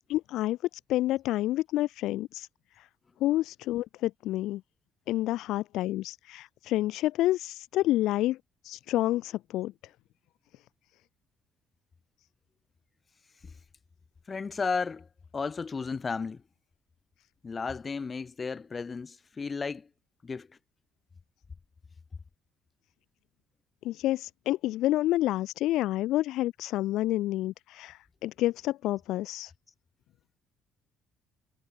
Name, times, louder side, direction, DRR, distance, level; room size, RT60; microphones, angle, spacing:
voice 1, 0.1-2.5 2.8-2.9 3.2-4.6 5.1-8.4 8.6-9.7 23.8-29.5, left 15 dB, 75° left, 0.8 m, -29 dB
voice 2, 14.3-15.1 15.3-16.4 17.4-19.9 20.2-20.5, left 5 dB, 25° left, 6.5 m, -33 dB
cardioid pair, 140°, 0 cm